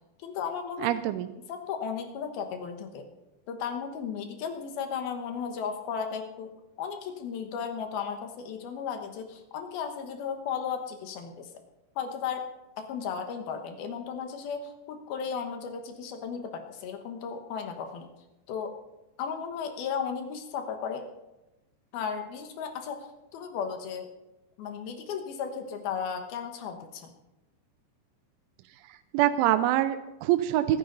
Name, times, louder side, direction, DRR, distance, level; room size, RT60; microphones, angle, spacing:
voice 1, 0.2-0.9 1.5-3.1 3.5-6.5 6.8-11.5 12.0-12.5 12.8-18.1 18.5-18.7 19.2-21.1 21.9-24.1 24.6-27.1, left 6 dB, 65° left, 5 dB, 2.7 m, -35 dB
voice 2, 0.8-1.3 29.1-30.8, right 13 dB, 90° right, 11 dB, 3.0 m, -25 dB
25.0 x 9.8 x 3.9 m, 0.99 s
omnidirectional pair, 5.4 m